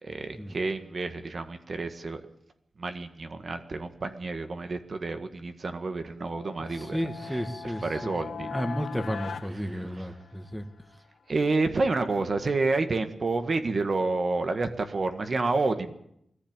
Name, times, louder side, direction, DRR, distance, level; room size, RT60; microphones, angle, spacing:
voice 1, 0.0-2.2 2.8-7.0 7.3-7.4 7.8-8.5 9.7-9.8 11.3-15.9, right 3 dB, 50° right, 7 dB, 1.7 m, -29 dB
sound 1, 6.2-10.6, left 6 dB, 85° left, 0.9 m, -40 dB
voice 2, 6.7-10.7, equal, 5° right, 7 dB, 1.8 m, -33 dB
22.0 x 14.5 x 9.0 m, 0.74 s
wide cardioid pair, 130°, 0 cm